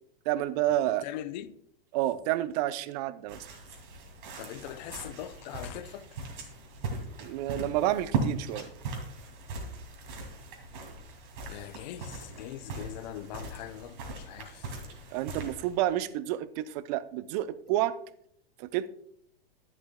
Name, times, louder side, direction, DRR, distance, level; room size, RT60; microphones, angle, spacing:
voice 1, 0.3-1.0 1.9-3.5 7.2-8.7 15.1-18.0 18.6-18.9, right 13 dB, 45° right, 0.6 m, -29 dB
voice 2, 0.9-1.6 4.4-6.1 11.5-14.7, left 12 dB, 50° left, 0.6 m, -41 dB
sound 1, 3.3-16.0, right 4 dB, 60° right, 2.6 m, -39 dB
11.5 x 10.5 x 2.2 m
hypercardioid pair, 105°, 29 cm